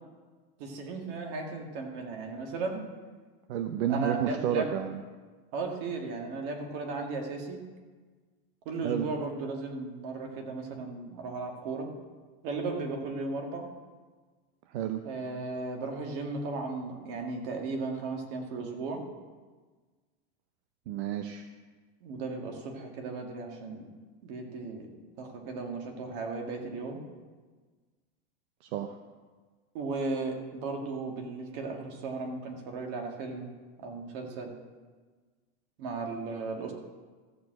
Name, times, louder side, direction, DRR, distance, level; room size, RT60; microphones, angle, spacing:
voice 1, 0.6-2.8 3.9-4.7 5.5-7.6 8.7-11.9 12.4-13.7 15.0-19.0 22.0-23.8 24.2-27.0 29.7-33.5 33.8-34.5 35.8-36.7, right 3 dB, 55° right, 2 dB, 2.1 m, -36 dB
voice 2, 3.5-5.0 8.8-9.1 14.7-15.0 20.9-21.4 28.7-29.0, right 9 dB, 70° right, 6 dB, 0.8 m, -30 dB
14.0 x 4.7 x 7.7 m, 1.4 s
supercardioid pair, 165°, 34 cm